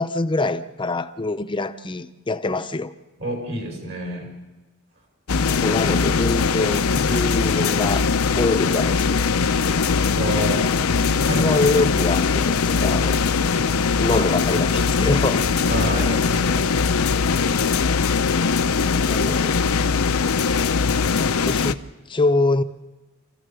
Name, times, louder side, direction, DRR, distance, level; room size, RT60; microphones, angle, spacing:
voice 1, 0.0-2.9 5.6-8.1 8.4-9.2 10.9-13.3 14.0-15.5 19.1-19.6 21.1-21.8 22.1-22.6, left 2 dB, 25° left, 0.7 m, -24 dB
voice 2, 3.2-4.3 10.1-10.7 11.2-11.7 14.1-14.2 15.7-16.6, right 1 dB, 60° right, 5.1 m, -28 dB
sound 1, 5.3-21.7, left 5 dB, 80° left, 0.7 m, -21 dB
28.0 x 15.0 x 6.9 m
head